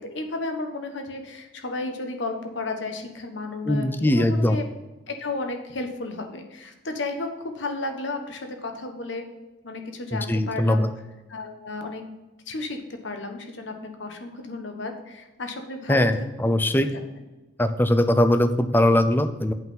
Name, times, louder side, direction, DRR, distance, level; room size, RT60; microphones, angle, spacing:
voice 1, 0.0-4.7 5.1-9.2 9.6-10.9 11.3-12.0 12.5-16.5, left 2 dB, 70° left, 5 dB, 1.2 m, -33 dB
voice 2, 3.7-4.6 10.1-10.9 15.9-16.9 17.6-19.5, left 1 dB, 10° left, 9 dB, 0.5 m, -21 dB
8.2 x 5.5 x 5.6 m, 1.1 s
head